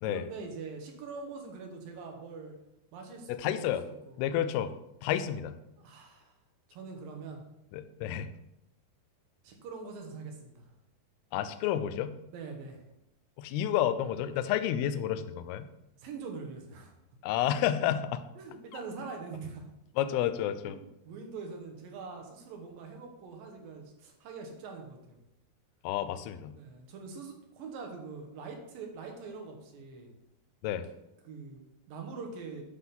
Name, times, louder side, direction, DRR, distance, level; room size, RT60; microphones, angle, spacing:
voice 1, 0.0-2.6 2.9-3.8 4.1-4.3 5.8-6.4 6.7-7.4 9.4-10.7 12.3-12.8 16.0-16.9 18.4-19.7 20.6-25.2 26.5-30.1 31.2-32.6, right 4 dB, 70° right, 2 dB, 2.6 m, -43 dB
voice 2, 3.3-3.8 4.2-4.7 5.0-5.6 7.7-8.3 11.3-12.1 13.4-15.7 17.2-18.2 18.7-18.8 20.0-20.8 25.8-26.5 30.6-30.9, left 11 dB, 80° left, 11 dB, 2.4 m, -30 dB
9.9 x 3.7 x 5.8 m, 0.87 s
omnidirectional pair, 4.7 m